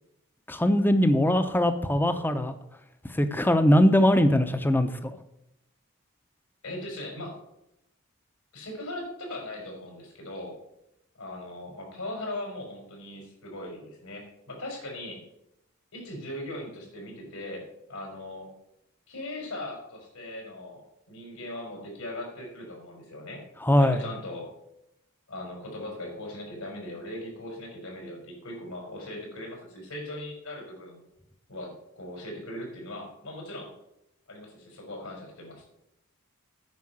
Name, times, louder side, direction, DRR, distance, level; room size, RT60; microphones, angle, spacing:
voice 1, 0.5-2.5 3.1-5.1 23.6-24.0, equal, 10° left, 9 dB, 0.7 m, -21 dB
voice 2, 6.6-7.4 8.5-10.5 11.2-15.2 15.9-18.5 19.1-20.8 21.1-23.4 23.8-24.5 25.3-31.0 31.5-33.7 34.3-35.7, left 1 dB, 80° left, 0 dB, 4.6 m, -39 dB
9.6 x 5.7 x 7.6 m, 0.82 s
head